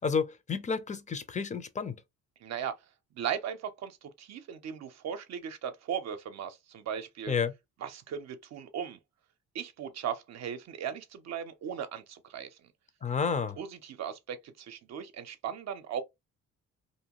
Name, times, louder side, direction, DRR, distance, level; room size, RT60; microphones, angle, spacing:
voice 1, 0.0-2.0 7.3-7.5 13.0-13.6, left 5 dB, 25° left, 0.5 m, -30 dB
voice 2, 2.4-2.7 3.2-7.3 7.8-9.0 9.5-12.5 13.6-16.0, right 8 dB, 60° right, 0.6 m, -37 dB
2.6 x 2.2 x 2.9 m
cardioid pair, 90°, 30 cm